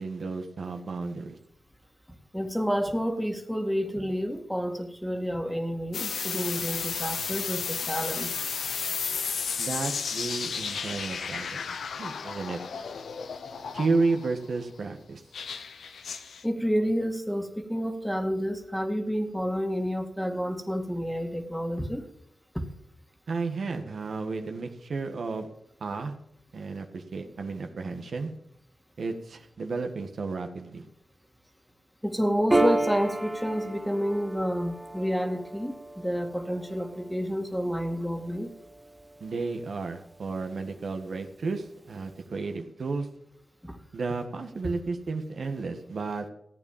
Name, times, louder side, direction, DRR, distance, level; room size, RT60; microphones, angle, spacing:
voice 1, 0.0-1.4 9.6-11.6 12.0-12.6 13.7-15.2 23.3-25.5 25.8-26.1 26.5-28.3 29.0-30.8 39.2-43.1 43.9-46.2, right 3 dB, 70° right, 5 dB, 1.6 m, -32 dB
voice 2, 2.3-8.3 16.4-22.1 22.5-22.7 32.0-38.5 43.6-43.8, equal, 5° left, 5 dB, 2.1 m, -29 dB
sound 1, 5.9-14.4 15.3-16.4, left 6 dB, 85° left, 1.0 m, -33 dB
Piano, 32.5-39.4, right 1 dB, 15° right, 1.1 m, -32 dB
15.0 x 8.7 x 7.4 m, 0.74 s
cardioid pair, 60°, 0 cm